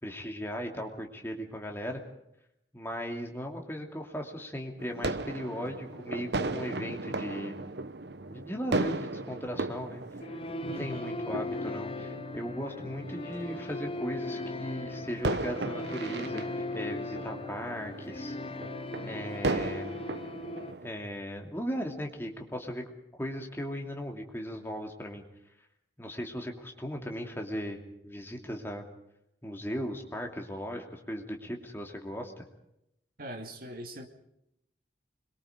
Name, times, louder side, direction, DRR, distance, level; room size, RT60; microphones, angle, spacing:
voice 1, 0.0-2.0 2.7-7.6 8.3-10.0 10.6-18.3 19.0-19.9 20.8-22.8 23.2-25.2 26.0-28.8 29.4-32.4, equal, 15° left, 2 dB, 2.7 m, -37 dB
sound 1, 4.8-20.9, right 2 dB, 70° right, 1.0 m, -37 dB
sound 2, 10.2-20.7, left 2 dB, 30° left, 0.8 m, -38 dB
voice 2, 10.7-11.1 33.2-34.1, right 1 dB, 55° right, 5 dB, 2.5 m, -42 dB
25.5 x 22.5 x 5.2 m, 0.81 s
head